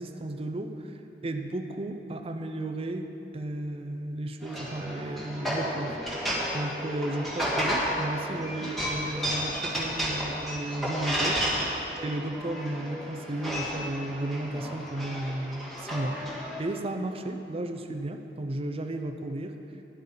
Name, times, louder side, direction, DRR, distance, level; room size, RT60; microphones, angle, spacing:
voice 1, 0.0-6.0 6.5-16.2 16.6-19.6, right 1 dB, 35° right, 6 dB, 0.6 m, -34 dB
sound 1, 4.4-16.6, equal, ahead, 2.6 m, -32 dB
17.5 x 11.0 x 3.9 m, 3.0 s
head